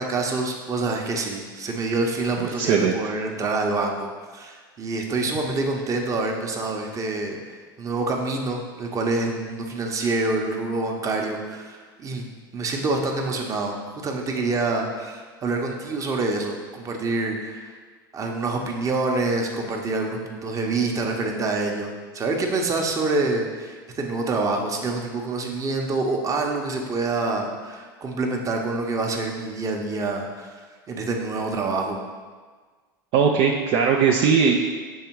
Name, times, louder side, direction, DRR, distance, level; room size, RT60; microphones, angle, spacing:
voice 1, 0.0-13.8 14.0-17.7 18.1-30.5 30.9-32.0, right 3 dB, 30° right, 2 dB, 0.9 m, -26 dB
voice 2, 2.6-3.0 33.1-34.6, right 6 dB, 55° right, 1 dB, 0.5 m, -19 dB
6.4 x 3.5 x 4.6 m, 1.5 s
hypercardioid pair, 95°, 12 cm